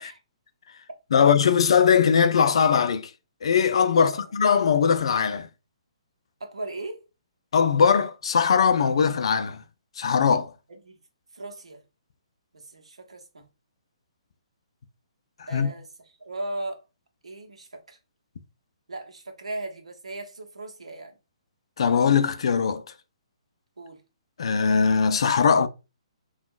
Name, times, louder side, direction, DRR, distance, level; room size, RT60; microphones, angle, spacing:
voice 1, 1.1-3.1 3.4-5.5 7.5-9.6 10.0-10.5 15.4-15.7 21.8-22.8 24.4-25.7, left 6 dB, 60° left, 0.4 m, -20 dB
voice 2, 6.4-7.0 10.7-11.0 11.3-11.8 12.5-13.5 15.5-15.9 16.2-16.8 17.2-18.0 18.9-21.2 23.8-24.0, right 2 dB, 75° right, 0.8 m, -37 dB
3.5 x 2.3 x 2.4 m
figure-of-eight pair, 130°, 3 cm